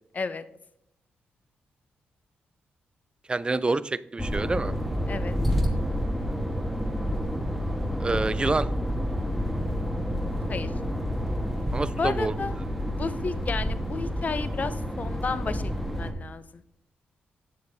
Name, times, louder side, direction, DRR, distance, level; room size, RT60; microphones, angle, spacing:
voice 1, 3.3-4.7 8.0-8.7 11.7-12.3, right 3 dB, 25° right, 17 dB, 0.3 m, -27 dB
sound 1, 4.2-16.1, equal, ahead, 1.2 m, -29 dB
voice 2, 12.0-12.5 12.9-16.6, left 4 dB, 45° left, 14 dB, 0.5 m, -32 dB
8.6 x 6.6 x 3.3 m, 0.74 s
cardioid pair, 65°, 4 cm